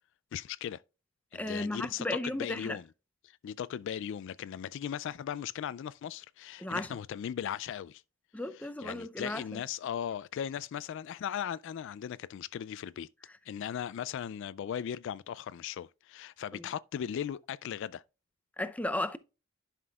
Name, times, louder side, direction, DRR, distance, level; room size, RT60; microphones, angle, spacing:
voice 1, 0.3-0.8 1.3-2.9 3.2-8.0 8.5-13.1 13.5-18.0, left 9 dB, 65° left, 0.3 m, -38 dB
voice 2, 1.3-2.8 6.6-6.9 8.3-9.6 16.5-16.7 18.6-19.2, left 1 dB, 5° left, 0.5 m, -35 dB
11.0 x 5.9 x 2.3 m
head